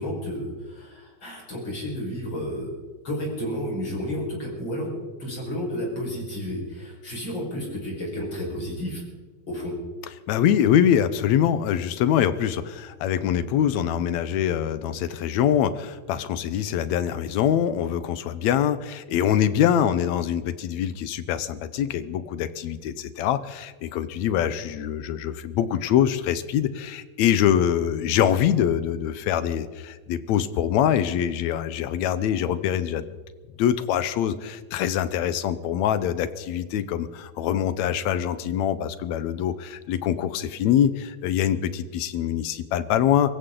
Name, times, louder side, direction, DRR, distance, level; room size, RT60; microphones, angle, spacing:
voice 1, 0.0-2.7 3.0-9.0 9.5-9.7, equal, 40° left, -3 dB, 5.7 m, -31 dB
voice 2, 10.3-33.1 33.6-43.3, left 10 dB, 75° left, 13 dB, 2.0 m, -24 dB
24.5 x 15.0 x 3.8 m, 1.4 s
omnidirectional pair, 3.4 m